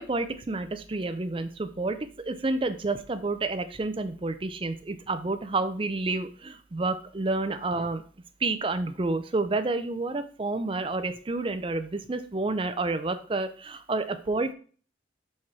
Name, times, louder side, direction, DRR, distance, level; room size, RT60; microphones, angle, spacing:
voice 1, 0.0-8.0 8.4-14.5, right 3 dB, 30° right, 9 dB, 0.5 m, -29 dB
4.8 x 4.7 x 4.2 m, 0.41 s
head